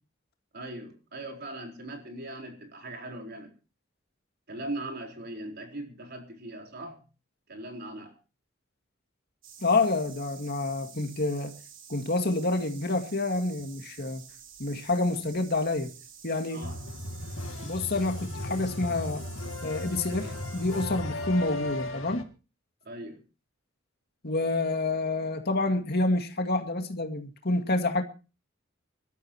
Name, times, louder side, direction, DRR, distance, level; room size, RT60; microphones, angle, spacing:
voice 1, 0.5-3.5 4.5-7.0 7.5-8.1 16.5-16.8 22.8-23.2, right 1 dB, 55° right, 4.2 m, -40 dB
sound 1, 9.4-20.9, right 8 dB, 70° right, 3.3 m, -50 dB
voice 2, 9.6-11.5 11.9-14.2 14.6-15.9 16.2-16.6 17.6-19.2 19.6-22.2 24.2-28.0, left 2 dB, 55° left, 2.2 m, -28 dB
sound 2, 16.6-22.2, left 1 dB, 85° left, 2.1 m, -36 dB
25.0 x 13.0 x 2.9 m
head